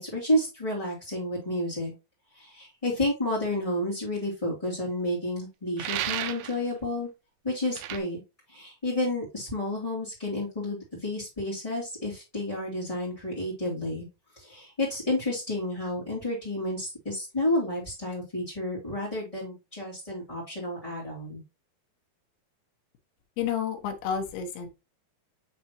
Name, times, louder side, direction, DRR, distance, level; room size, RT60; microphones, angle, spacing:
voice 1, 0.0-1.9 2.3-7.1 7.4-8.2 8.5-14.1 14.4-21.4, left 1 dB, 10° left, -8 dB, 1.9 m, -30 dB
sound 1, 5.8-6.6 7.7-8.0, right 12 dB, 85° right, 2.0 m, -32 dB
voice 2, 23.4-24.7, left 8 dB, 70° left, 4 dB, 2.9 m, -30 dB
9.4 x 3.5 x 2.9 m, 0.26 s
omnidirectional pair, 4.7 m